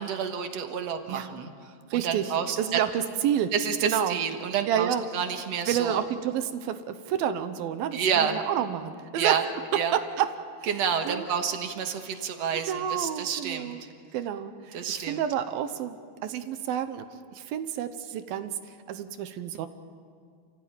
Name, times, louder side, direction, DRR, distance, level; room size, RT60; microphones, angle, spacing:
voice 1, 0.0-1.5 1.9-2.8 3.5-6.1 7.9-8.4 9.2-9.4 9.7-10.0 10.7-13.8 14.7-15.2, right 7 dB, 60° right, 6 dB, 1.8 m, -29 dB
voice 2, 1.9-3.5 3.8-4.2 4.7-5.0 5.7-9.4 9.9-10.3 11.1-11.3 12.5-13.8 14.1-17.1 17.3-19.7, right 10 dB, 75° right, 10 dB, 2.6 m, -29 dB
29.5 x 15.5 x 8.9 m, 2.1 s
omnidirectional pair, 4.6 m